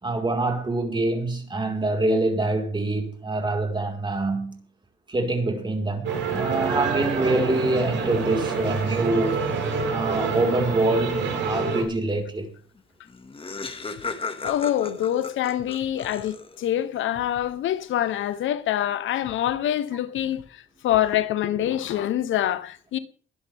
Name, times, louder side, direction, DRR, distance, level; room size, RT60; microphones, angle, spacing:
voice 1, 0.0-4.6 5.1-9.4 9.9-12.5, right 2 dB, 25° right, 4.9 m, -25 dB
sound 1, 6.0-11.8, right 5 dB, 70° right, 7.9 m, -27 dB
Laughter, 12.8-12.9 13.1-16.7, left 4 dB, 25° left, 2.2 m, -35 dB
voice 2, 14.4-23.0, left 11 dB, 80° left, 1.1 m, -25 dB
22.0 x 11.5 x 3.6 m
cardioid pair, 90°, 20 cm